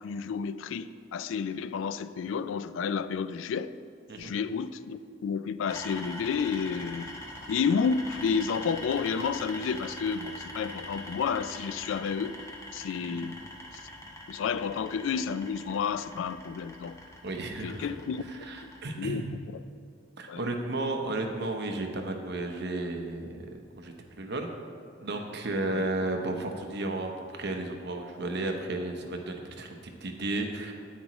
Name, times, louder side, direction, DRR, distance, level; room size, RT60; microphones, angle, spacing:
voice 1, 0.0-3.7 4.2-7.1 7.5-12.4 12.7-13.4 14.3-17.0 17.6-18.5 19.0-19.2 20.3-20.4 25.7-25.8, left 6 dB, 75° left, 0.3 m, -31 dB
sound 1, 5.7-18.9, left 1 dB, 15° left, 1.1 m, -43 dB
voice 2, 17.2-18.0 18.3-19.3 20.2-23.5 23.8-24.5 25.0-30.7, right 2 dB, 60° right, 0.8 m, -33 dB
9.8 x 8.5 x 3.1 m
head